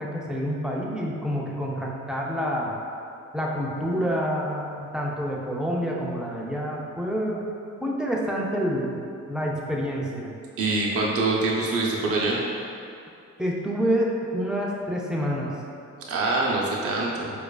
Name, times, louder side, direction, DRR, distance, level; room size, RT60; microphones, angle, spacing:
voice 1, 0.0-2.8 3.3-7.5 7.8-9.0 9.3-10.3 13.4-15.5, equal, 5° right, -3 dB, 0.4 m, -27 dB
voice 2, 10.6-12.4 16.1-17.3, right 2 dB, 50° right, -3 dB, 0.6 m, -24 dB
4.5 x 2.5 x 2.3 m, 2.5 s
cardioid pair, 90°, 30 cm